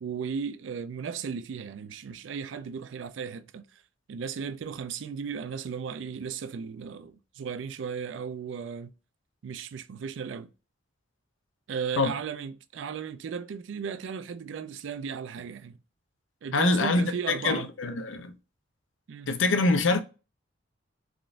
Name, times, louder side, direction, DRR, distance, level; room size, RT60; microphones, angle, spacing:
voice 1, 0.0-3.8 4.1-8.9 9.4-10.5 11.7-15.8 16.4-17.7 19.1-19.3, right 6 dB, 75° right, 0.4 m, -36 dB
voice 2, 16.5-18.3 19.3-20.0, left 3 dB, 80° left, 0.5 m, -25 dB
3.6 x 2.5 x 2.3 m
head